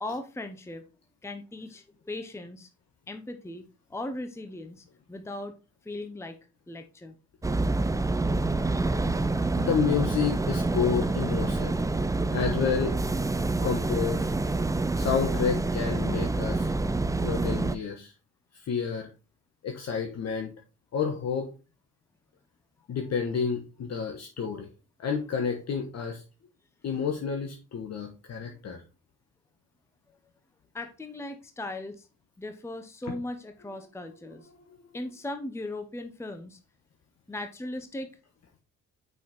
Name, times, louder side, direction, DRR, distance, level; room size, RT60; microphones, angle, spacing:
voice 1, 0.0-0.8 1.2-2.7 3.1-5.5 5.8-6.4 6.7-7.1 28.5-28.6 30.7-32.1 32.4-34.5 34.9-36.6 37.3-38.1, left 2 dB, 10° left, 7 dB, 0.8 m, -38 dB
sound 1, 7.4-17.8, right 2 dB, 10° right, 0.5 m, -27 dB
voice 2, 9.6-11.8 12.3-13.0 13.6-14.3 15.0-16.7 17.2-18.1 18.5-19.1 19.6-20.5 20.9-21.5 22.9-24.7 25.0-26.2 26.8-28.8, left 6 dB, 60° left, 3 dB, 1.3 m, -29 dB
6.2 x 5.7 x 4.3 m, 0.32 s
cardioid pair, 90°, 30 cm